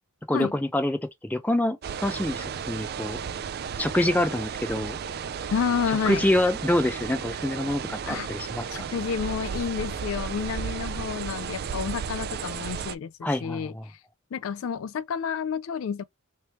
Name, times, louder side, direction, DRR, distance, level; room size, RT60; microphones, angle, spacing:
voice 1, 0.3-3.2 3.8-5.0 6.1-8.8 13.2-13.8, left 1 dB, 10° left, 0.5 m, -26 dB
sound 1, 1.8-12.9, right 6 dB, 45° right, 0.3 m, -34 dB
voice 2, 5.5-6.2 8.0-8.3 8.7-14.0 14.3-16.0, left 7 dB, 70° left, 0.3 m, -30 dB
3.3 x 3.0 x 3.0 m
head